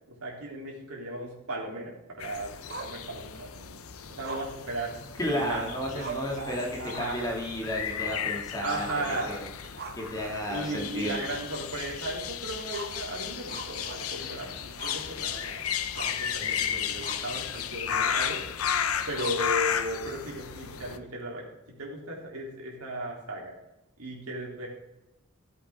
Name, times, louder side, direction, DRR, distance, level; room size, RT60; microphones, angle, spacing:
voice 1, 0.1-2.5 2.8-3.8 4.1-5.0 5.3-7.2 8.6-9.4 10.5-15.6 15.9-18.5 19.1-21.5 21.7-23.5 24.0-24.7, right 1 dB, 90° right, -2 dB, 3.5 m, -36 dB
sound 1, 2.2-21.0, left 8 dB, 85° left, 0.8 m, -34 dB
Growling, 2.7-3.5 4.2-5.5 5.7-5.8 6.0-6.4 6.8-7.3 7.6-7.7 9.0-10.3 10.6-10.7 11.3-11.4 12.7-14.3 14.8-15.1 15.4-16.3 17.0-17.3 17.9-18.2 19.2-19.8, right 4 dB, 50° right, 1.2 m, -42 dB
voice 2, 5.2-6.7 7.0-8.9 9.3-9.4 10.0-11.2, equal, 15° left, -1 dB, 2.5 m, -32 dB
14.5 x 8.1 x 3.7 m, 0.92 s
head